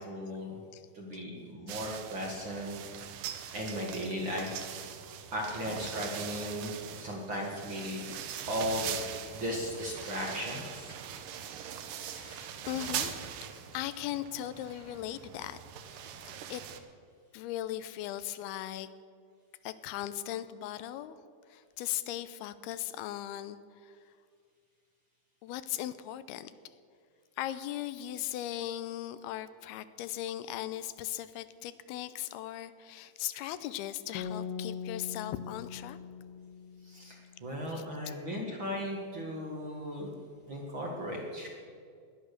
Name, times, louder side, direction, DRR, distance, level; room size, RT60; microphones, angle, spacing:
voice 1, 0.0-0.6 0.9-2.8 3.5-4.5 5.3-8.1 8.5-8.9 9.3-11.0 36.8-40.1 40.5-41.5, equal, 40° right, -1 dB, 1.9 m, -36 dB
sound 1, 1.7-16.8, right 9 dB, 70° right, 2.3 m, -41 dB
voice 2, 10.9-11.5 12.0-13.1 13.7-15.6 15.9-16.1 16.5-16.6 17.3-18.9 19.6-21.2 21.5-24.0 25.4-26.5 27.4-36.0 37.7-38.1, left 13 dB, 90° left, 13 dB, 2.6 m, -38 dB
sound 2, 34.1-37.3, left 6 dB, 75° left, 1.9 m, -41 dB
17.5 x 11.0 x 6.7 m, 2.2 s
omnidirectional pair, 4.5 m